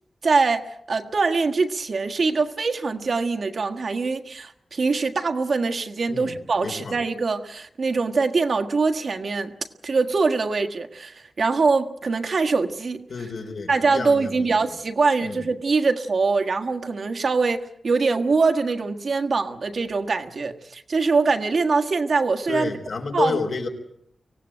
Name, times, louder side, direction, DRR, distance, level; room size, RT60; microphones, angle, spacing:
voice 1, 0.2-9.5 9.8-13.0 13.7-22.7 23.1-23.4, right 4 dB, 55° right, 5 dB, 1.5 m, -23 dB
voice 2, 6.1-6.9 13.1-14.5 15.2-15.4 22.5-23.7, left 4 dB, 75° left, 4 dB, 3.8 m, -30 dB
24.5 x 17.5 x 8.9 m, 0.73 s
wide cardioid pair, 135°, 0 cm